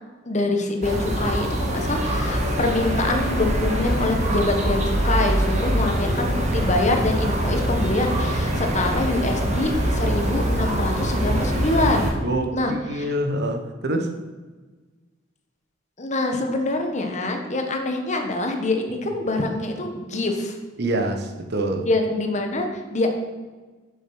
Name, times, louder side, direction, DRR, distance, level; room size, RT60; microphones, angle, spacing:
voice 1, 0.2-12.1 12.5-13.1 16.0-20.6 21.8-23.1, left 2 dB, 40° left, 4 dB, 1.2 m, -25 dB
sound 1, 0.8-12.1, right 1 dB, 40° right, 1.6 m, -23 dB
voice 2, 12.2-14.1 20.8-21.9, right 1 dB, 60° right, 5 dB, 1.0 m, -25 dB
7.3 x 6.9 x 6.0 m, 1.3 s
head